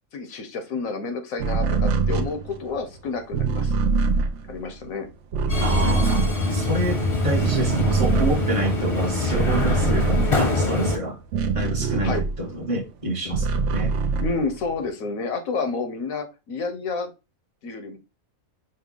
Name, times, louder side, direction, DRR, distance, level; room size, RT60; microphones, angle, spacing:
voice 1, 0.1-3.7 4.5-5.1 5.7-6.0 12.0-12.2 14.2-17.1 17.6-18.0, left 4 dB, 85° left, 1.3 m, -30 dB
sound 1, 1.4-7.0 7.3-12.7 13.1-14.9, right 4 dB, 65° right, 0.9 m, -24 dB
Subway metro underground, 5.5-11.0, left 2 dB, 30° left, 0.7 m, -24 dB
voice 2, 5.6-6.2 6.5-11.2 11.5-14.0, right 1 dB, 30° right, 0.9 m, -28 dB
5.4 x 2.2 x 3.7 m
omnidirectional pair, 1.4 m